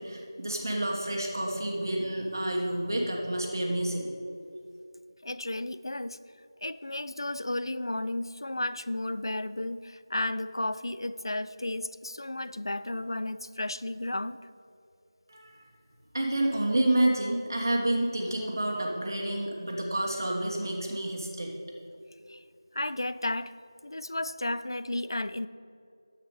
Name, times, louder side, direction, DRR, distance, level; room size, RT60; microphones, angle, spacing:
voice 1, 0.0-4.1 15.3-15.6 16.1-21.6, right 1 dB, 45° right, 0 dB, 1.3 m, -29 dB
voice 2, 5.2-6.2 6.6-14.4 22.3-22.4 22.7-23.5 23.8-25.5, left 1 dB, 75° left, 14 dB, 0.4 m, -33 dB
9.6 x 8.1 x 5.1 m, 2.6 s
figure-of-eight pair, 175°, 2 cm